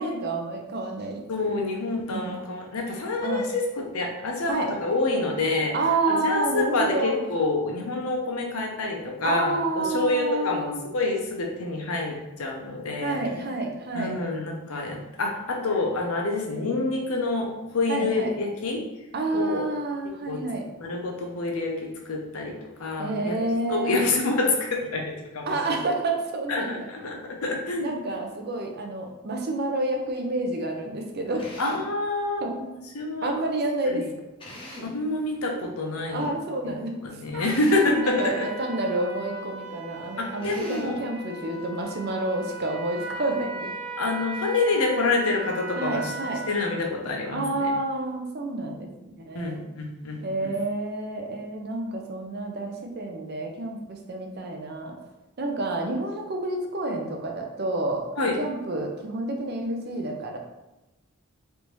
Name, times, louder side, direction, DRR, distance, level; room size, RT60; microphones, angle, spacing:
voice 1, 0.0-1.3 2.1-2.3 3.2-3.5 4.5-4.7 5.7-7.2 9.2-10.8 13.0-14.2 17.9-18.3 19.1-20.6 23.0-24.2 25.5-26.9 27.8-31.4 32.4-32.5 33.2-34.1 36.1-36.9 38.0-43.7 45.8-46.4 47.3-49.6 50.2-55.0 55.4-58.1 58.4-60.4, right 2 dB, 50° right, 2 dB, 0.5 m, -29 dB
voice 2, 1.3-5.7 6.1-13.2 13.9-18.8 19.3-19.7 20.3-20.4 20.8-23.3 23.7-25.5 26.5-27.9 31.6-32.7 32.9-33.3 33.8-34.0 34.8-36.3 36.6-36.7 37.0-38.5 40.2-41.0 44.0-46.1 46.5-47.7 49.3-50.5 58.2-58.4, left 2 dB, 90° left, 1 dB, 0.7 m, -27 dB
Drill, 31.4-31.9 34.4-35.0 37.4-38.0 40.4-41.0, left 1 dB, 25° left, 0.6 m, -41 dB
Trumpet, 37.3-46.9, right 2 dB, 75° right, 0.8 m, -37 dB
3.4 x 2.6 x 3.0 m, 1.0 s
head